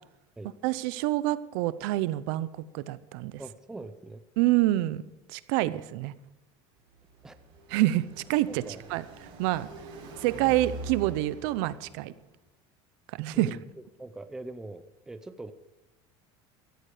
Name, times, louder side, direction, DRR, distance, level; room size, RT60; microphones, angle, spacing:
voice 1, 0.6-3.4 4.4-5.0 5.3-6.1 7.7-8.6 8.9-9.0 9.4-9.7 10.2-12.1 13.1-13.6, right 16 dB, 60° right, 16 dB, 0.7 m, -27 dB
voice 2, 3.4-4.2 7.2-7.4 8.5-8.8 13.3-13.6 14.0-15.5, right 2 dB, 5° right, 9 dB, 0.6 m, -42 dB
Car passing by, 6.8-12.3, right 2 dB, 45° right, 5.4 m, -44 dB
17.0 x 13.5 x 5.0 m, 0.91 s
cardioid pair, 175°, 13 cm